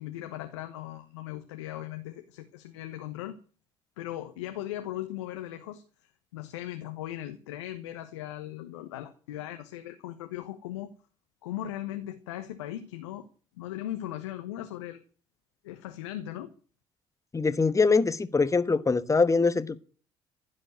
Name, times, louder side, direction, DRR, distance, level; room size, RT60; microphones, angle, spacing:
voice 1, 0.0-3.4 4.0-10.9 11.4-13.3 13.6-15.0 15.6-16.5, left 13 dB, 75° left, 1.2 m, -38 dB
voice 2, 17.3-19.8, left 4 dB, 20° left, 1.2 m, -23 dB
15.5 x 7.8 x 9.4 m
figure-of-eight pair, 55°, 15 cm